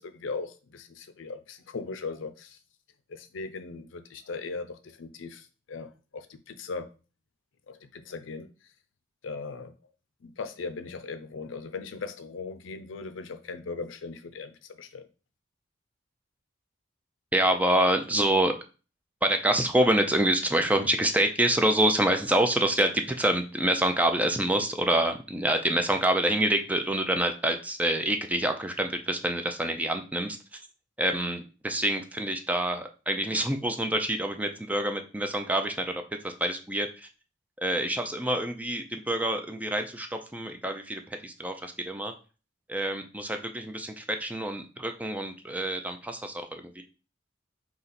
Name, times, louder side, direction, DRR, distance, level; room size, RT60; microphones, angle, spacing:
voice 1, 0.0-2.6 3.1-6.9 7.7-8.5 9.2-9.7 10.2-15.1, left 4 dB, 80° left, 9 dB, 0.5 m, -38 dB
voice 2, 17.3-18.5 19.2-30.6 31.0-37.1 37.6-42.1 42.7-46.8, right 1 dB, 10° right, 5 dB, 0.4 m, -27 dB
3.9 x 2.9 x 4.2 m, 0.34 s
head